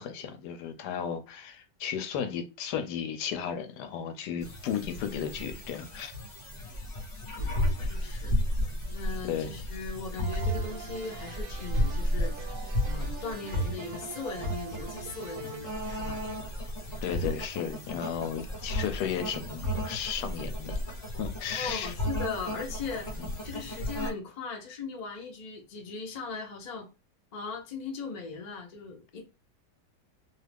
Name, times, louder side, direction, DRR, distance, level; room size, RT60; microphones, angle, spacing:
voice 1, 0.0-6.1 9.3-9.5 17.0-21.9 23.2-23.3, left 8 dB, 75° left, 1.1 m, -34 dB
sound 1, 4.4-24.1, left 1 dB, 30° left, 0.9 m, -33 dB
voice 2, 7.4-8.4 8.9-12.6 12.8-16.2 21.6-23.2 23.4-26.9 27.3-29.2, left 5 dB, 50° left, 0.5 m, -39 dB
sound 2, 10.2-17.2, right 6 dB, 70° right, 0.8 m, -44 dB
2.8 x 2.3 x 3.4 m
omnidirectional pair, 1.8 m